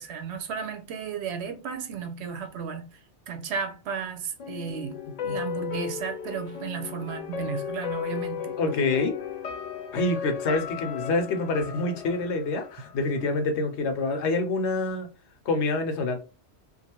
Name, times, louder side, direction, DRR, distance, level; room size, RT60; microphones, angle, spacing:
voice 1, 0.0-3.0 3.3-8.6, right 6 dB, 75° right, 0.8 m, -34 dB
sound 1, 4.4-13.4 13.7-13.8, left 7 dB, 55° left, 0.4 m, -35 dB
voice 2, 8.6-9.1 9.9-15.1 15.5-16.2, left 2 dB, 75° left, 0.9 m, -26 dB
2.5 x 2.3 x 2.8 m
omnidirectional pair, 1.2 m